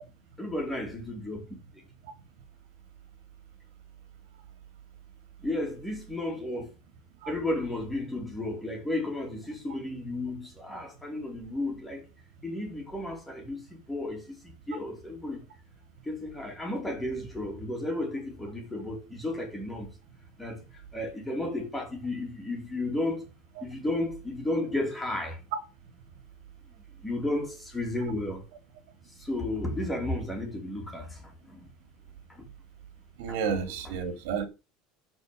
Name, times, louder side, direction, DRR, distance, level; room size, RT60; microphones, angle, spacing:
voice 1, 0.4-1.4 5.4-6.7 7.3-12.0 12.4-15.4 16.0-19.9 20.4-20.6 20.9-23.3 23.6-25.4 27.0-28.4 29.2-31.7 32.3-32.4 33.3-33.4 33.8-33.9, left 1 dB, 5° left, 2.7 m, -33 dB
voice 2, 33.2-34.5, right 6 dB, 75° right, 2.7 m, -31 dB
13.5 x 4.6 x 5.2 m
cardioid pair, 165°, 0 cm